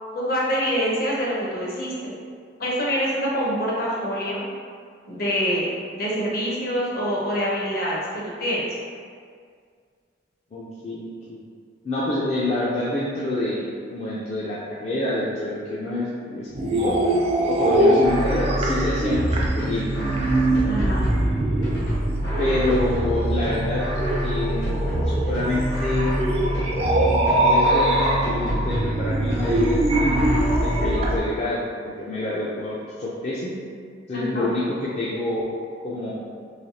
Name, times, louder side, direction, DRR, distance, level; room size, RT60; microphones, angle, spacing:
voice 1, 0.1-2.1 2.6-4.4 5.1-5.7 5.9-8.7 17.7-18.0 20.6-21.1 34.1-34.5, equal, 55° left, -5 dB, 0.7 m, -25 dB
voice 2, 10.5-11.4 11.8-17.0 17.5-19.8 22.4-23.9 24.2-24.7 25.0-26.2 27.0-30.1 30.6-31.6 31.8-33.5 34.1-35.5 35.8-36.2, left 1 dB, 35° left, -8 dB, 0.4 m, -27 dB
sound 1, 16.5-31.1, right 1 dB, 35° right, 0.3 m, -23 dB
sound 2, 18.0-31.2, right 1 dB, 75° left, 1.1 m, -26 dB
3.2 x 2.7 x 2.7 m, 2.1 s
head